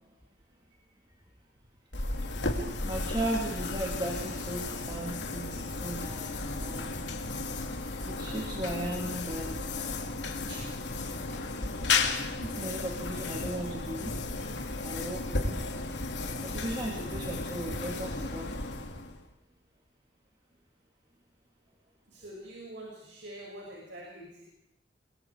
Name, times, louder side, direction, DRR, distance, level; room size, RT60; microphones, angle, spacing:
sound 1, 1.9-19.3, left 3 dB, 75° left, 2.7 m, -34 dB
voice 1, 2.8-7.0 8.0-10.0 10.5-10.7 12.4-14.2 14.8-15.6 16.4-18.7, right 1 dB, 25° right, -2 dB, 2.8 m, -37 dB
voice 2, 22.1-24.4, right 1 dB, 75° right, -3 dB, 6.5 m, -45 dB
29.0 x 23.0 x 4.9 m, 0.84 s
head